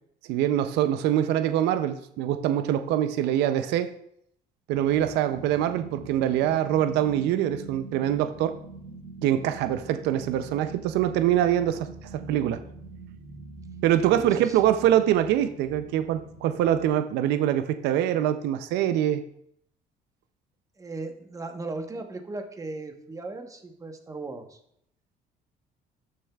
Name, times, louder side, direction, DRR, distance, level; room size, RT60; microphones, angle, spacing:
voice 1, 0.3-3.9 4.7-8.5 9.2-12.6 13.8-19.2, right 11 dB, 85° right, 10 dB, 0.5 m, -24 dB
sound 1, 4.7-16.9, right 3 dB, 65° right, 2.3 m, -44 dB
voice 2, 14.1-14.6 20.8-24.6, right 3 dB, 20° right, 5 dB, 1.0 m, -37 dB
12.5 x 6.7 x 2.3 m, 0.72 s
cardioid pair, 110°, 17 cm